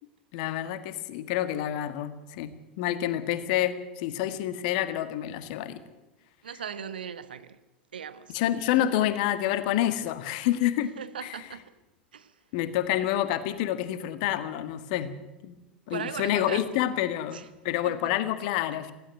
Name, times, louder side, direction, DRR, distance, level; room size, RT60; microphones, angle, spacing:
voice 1, 0.3-5.8 8.3-10.9 11.2-11.4 12.5-15.1 15.4-15.5 15.9-18.9, left 12 dB, 50° left, 1.7 m, -28 dB
voice 2, 6.4-7.6 7.9-8.3 8.8-9.1 10.6-11.7 12.1-12.3 15.9-16.9 17.3-17.5 17.8-18.1, right 8 dB, 70° right, 1.2 m, -39 dB
17.0 x 16.0 x 9.4 m
figure-of-eight pair, 80°, 5 cm